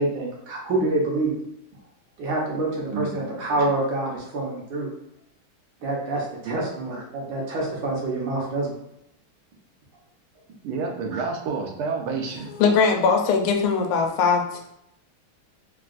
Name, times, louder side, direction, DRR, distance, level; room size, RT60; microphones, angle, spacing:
voice 1, 0.0-1.3 2.2-4.9 5.8-8.7 11.1-11.2, right 2 dB, 65° right, -3 dB, 1.4 m, -26 dB
voice 2, 10.6-12.5, right 4 dB, 85° right, 2 dB, 1.5 m, -29 dB
voice 3, 12.5-14.4, left 5 dB, 85° left, 3 dB, 1.4 m, -20 dB
3.9 x 2.2 x 2.4 m, 0.81 s
omnidirectional pair, 2.3 m